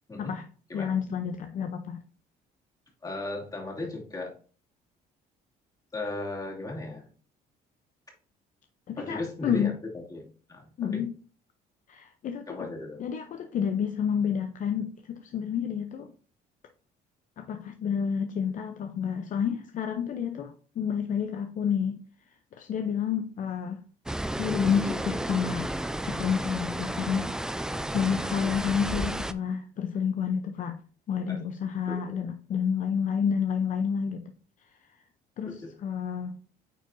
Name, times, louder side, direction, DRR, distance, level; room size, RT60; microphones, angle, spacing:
voice 1, 0.7-2.0 8.9-9.7 10.8-11.1 11.9-12.7 13.0-16.1 17.4-22.0 22.6-23.8 24.4-25.7 26.0-27.6 27.9-30.8 31.1-34.2 35.4-36.4, left 7 dB, 50° left, 0.7 m, -29 dB
voice 2, 3.0-4.3 5.9-7.1 9.0-11.0 12.5-13.0 31.3-31.4 31.9-32.0 35.5-35.7, left 2 dB, 20° left, 2.7 m, -36 dB
sound 1, 24.1-29.3, right 1 dB, 5° right, 0.3 m, -32 dB
9.1 x 4.6 x 2.6 m
cardioid pair, 110°, 17 cm